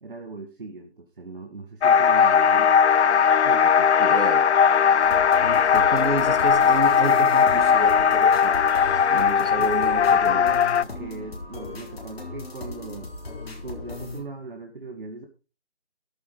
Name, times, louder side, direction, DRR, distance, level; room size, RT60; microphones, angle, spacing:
voice 1, 0.0-2.7 3.4-4.2 9.0-9.7 10.1-13.1 13.6-15.3, right 3 dB, 50° right, 2 dB, 1.9 m, -39 dB
sound 1, 1.8-10.8, left 7 dB, 75° left, 0.5 m, -19 dB
voice 2, 4.0-4.4 5.4-8.5 8.9-10.4, right 2 dB, 90° right, 8 dB, 2.7 m, -31 dB
sound 2, 5.0-14.2, left 2 dB, 60° left, 3.8 m, -37 dB
13.5 x 7.8 x 5.0 m, 0.33 s
figure-of-eight pair, 170°, 34 cm